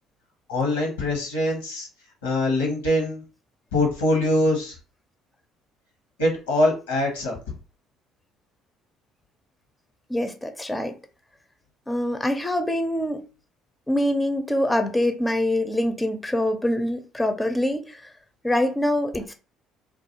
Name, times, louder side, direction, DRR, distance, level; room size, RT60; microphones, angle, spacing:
voice 1, 0.5-1.9 2.2-3.2 3.7-4.8 6.2-7.4, left 1 dB, 85° left, 0.8 m, -23 dB
voice 2, 10.1-11.0 11.9-13.2 13.9-18.0 18.4-19.3, left 1 dB, 10° left, 0.4 m, -24 dB
2.3 x 2.3 x 2.8 m
hypercardioid pair, 55°, 0 cm